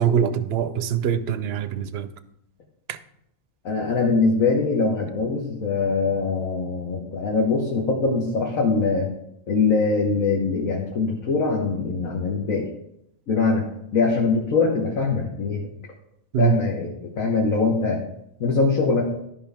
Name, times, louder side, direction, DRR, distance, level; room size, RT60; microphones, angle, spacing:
voice 1, 0.0-2.1 2.9-3.0 16.3-16.5, right 8 dB, 60° right, 0.7 m, -23 dB
voice 2, 3.6-9.1 9.5-12.7 13.3-13.7 13.9-15.6 16.4-18.0 18.4-19.1, left 4 dB, 75° left, 1.6 m, -22 dB
13.5 x 5.5 x 3.5 m
omnidirectional pair, 1.4 m